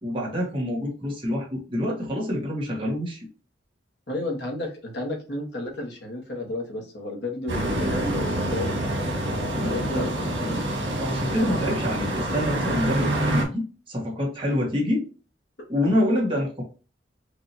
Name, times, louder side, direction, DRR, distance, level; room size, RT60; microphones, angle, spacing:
voice 1, 0.0-3.2 9.5-10.1 11.0-15.0 15.7-16.6, left 1 dB, 30° right, -3 dB, 1.6 m, -26 dB
voice 2, 4.1-9.1 9.6-10.8 15.8-16.0, left 1 dB, 65° left, 1 dB, 1.4 m, -32 dB
sound 1, 7.5-13.4, right 1 dB, 80° right, 1.6 m, -26 dB
4.9 x 2.8 x 2.8 m, 0.35 s
head